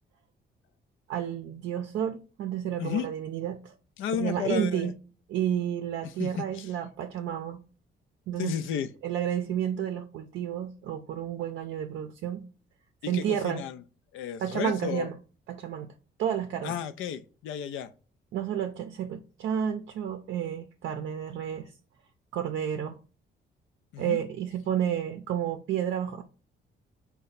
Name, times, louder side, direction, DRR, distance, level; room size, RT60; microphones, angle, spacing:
voice 1, 1.1-3.7 4.2-4.9 5.3-7.6 8.3-8.5 9.0-12.5 13.1-13.7 14.4-15.2 15.5-15.9 16.2-16.8 18.3-21.7 22.3-23.0 24.0-26.2, right 9 dB, 70° right, 0.5 m, -31 dB
voice 2, 4.0-4.9 6.2-6.7 8.4-8.9 13.0-13.8 14.1-15.1 16.6-17.9 23.9-24.2, left 9 dB, 80° left, 0.4 m, -32 dB
4.2 x 2.1 x 3.9 m
cardioid pair, 90°, 20 cm